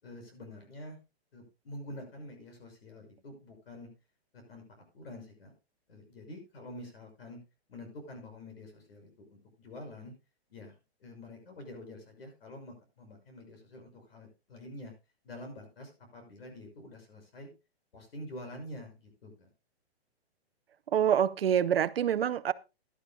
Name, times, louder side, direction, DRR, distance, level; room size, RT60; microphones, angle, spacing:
voice 1, 0.0-1.0 1.3-3.9 4.3-5.5 5.9-7.4 7.7-10.1 10.5-14.9 15.2-17.5 17.9-19.5, left 1 dB, 60° left, 6.2 m, -47 dB
voice 2, 20.9-22.5, right 9 dB, 60° right, 0.6 m, -26 dB
16.0 x 11.5 x 2.3 m
hypercardioid pair, 175°, 33 cm